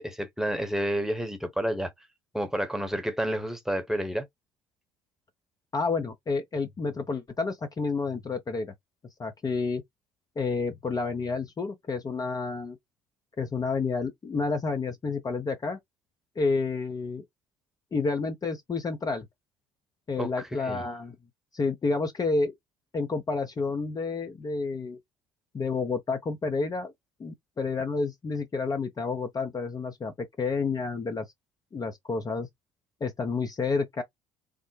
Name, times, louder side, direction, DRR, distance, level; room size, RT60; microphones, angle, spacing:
voice 1, 0.0-1.9 2.3-4.3 20.2-20.3 20.6-20.8, right 1 dB, 5° right, 1.0 m, -30 dB
voice 2, 5.7-8.7 9.2-9.8 10.4-12.8 13.4-15.8 16.4-17.2 17.9-19.3 20.1-21.2 21.5-22.5 22.9-25.0 25.5-26.9 27.2-31.3 31.7-32.5 33.0-34.0, left 4 dB, 30° left, 0.7 m, -30 dB
3.4 x 2.0 x 3.2 m
hypercardioid pair, 60°, 14 cm